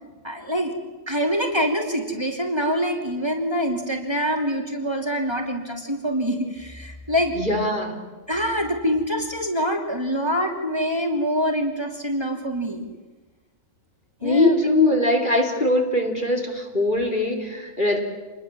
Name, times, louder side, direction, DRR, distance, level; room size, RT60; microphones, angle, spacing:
voice 1, 0.2-0.7 1.1-7.3 8.3-12.8 14.2-14.7, equal, 20° right, 2 dB, 3.0 m, -25 dB
voice 2, 7.3-8.0 14.2-18.0, left 2 dB, 40° left, 2 dB, 3.4 m, -21 dB
27.5 x 20.5 x 7.6 m, 1.2 s
omnidirectional pair, 1.4 m